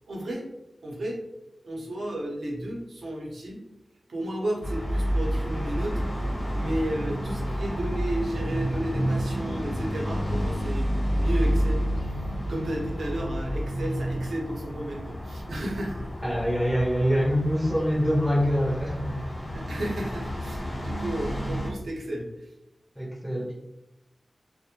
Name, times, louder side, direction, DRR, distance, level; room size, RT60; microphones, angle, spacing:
voice 1, 0.1-0.5 0.8-1.2 1.6-3.6 4.1-6.0 6.5-11.8 12.1-12.2 12.5-16.1 19.5-22.5, right 1 dB, 90° right, -2 dB, 0.7 m, -33 dB
sound 1, 4.6-21.7, equal, 35° left, 0.7 m, -30 dB
voice 2, 16.2-19.5 23.0-23.5, equal, 5° right, -5 dB, 0.5 m, -25 dB
2.4 x 2.1 x 2.8 m, 0.88 s
wide cardioid pair, 95°, 0 cm